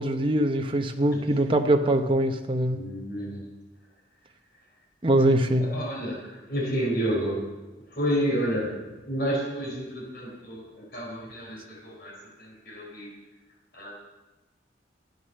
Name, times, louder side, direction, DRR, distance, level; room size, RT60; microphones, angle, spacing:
voice 1, 0.0-2.8 5.0-5.7, right 1 dB, 30° right, 5 dB, 0.9 m, -23 dB
voice 2, 2.7-3.4 5.6-7.4 7.9-8.7 9.0-13.1 13.7-13.9, equal, 55° left, -2 dB, 4.6 m, -30 dB
12.0 x 9.2 x 6.8 m, 1.1 s
head